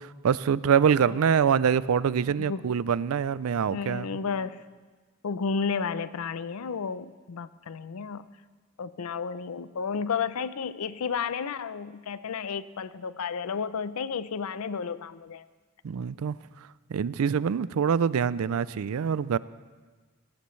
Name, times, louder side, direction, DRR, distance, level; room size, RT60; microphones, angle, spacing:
voice 1, 0.0-4.1 15.8-16.4 16.9-19.4, right 7 dB, 80° right, 18 dB, 0.4 m, -25 dB
voice 2, 3.7-4.6 5.2-8.3 8.8-15.5, left 5 dB, 85° left, 15 dB, 0.5 m, -32 dB
18.5 x 17.0 x 3.2 m, 1.4 s
head